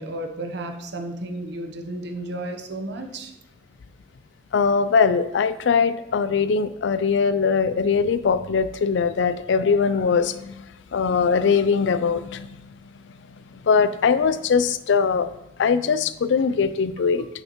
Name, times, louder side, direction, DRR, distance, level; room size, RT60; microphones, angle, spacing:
voice 1, 0.0-3.3, right 1 dB, 60° right, 5 dB, 0.9 m, -33 dB
voice 2, 4.5-10.6 10.9-12.5 13.7-15.3 15.6-17.3, left 5 dB, 70° left, 14 dB, 0.4 m, -21 dB
8.1 x 6.5 x 3.0 m, 0.89 s
head